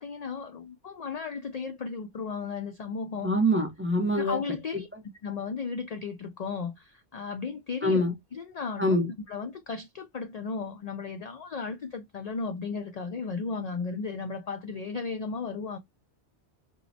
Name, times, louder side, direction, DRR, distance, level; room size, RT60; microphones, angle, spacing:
voice 1, 0.0-3.3 4.2-4.9 5.2-8.0 8.3-9.0 9.3-15.8, left 5 dB, 65° left, 0.4 m, -35 dB
voice 2, 3.2-4.4 7.8-8.1 8.8-9.1, equal, 15° right, 0.5 m, -24 dB
4.5 x 2.0 x 2.6 m
omnidirectional pair, 1.2 m